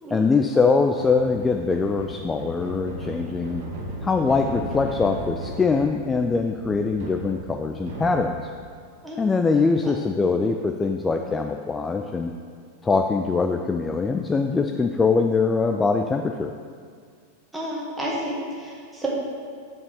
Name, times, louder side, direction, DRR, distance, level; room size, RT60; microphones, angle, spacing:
voice 1, 0.1-3.6 4.0-8.3 9.2-12.3 12.8-16.5, left 4 dB, 15° left, 4 dB, 0.3 m, -22 dB
sound 1, 0.9-8.7, right 1 dB, 55° right, 1.2 m, -37 dB
voice 2, 17.5-19.1, right 1 dB, 5° right, -5 dB, 1.7 m, -31 dB
5.3 x 4.8 x 6.3 m, 2.1 s
figure-of-eight pair, 90°, 0 cm